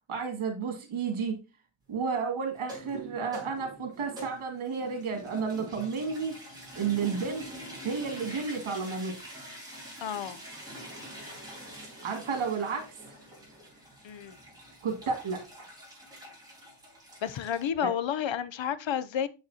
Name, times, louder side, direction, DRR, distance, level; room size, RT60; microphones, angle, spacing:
voice 1, 0.1-1.4 1.9-6.4 6.7-7.5 7.8-9.3 12.0-12.9 14.8-15.7 17.8-17.9, right 5 dB, 85° right, 2.6 m, -32 dB
sound 1, 2.6-17.7, right 1 dB, 10° right, 4.8 m, -45 dB
voice 2, 10.0-10.4 14.0-14.3 17.2-19.3, left 9 dB, 65° left, 0.8 m, -31 dB
7.9 x 6.4 x 2.8 m
wide cardioid pair, 120°, 48 cm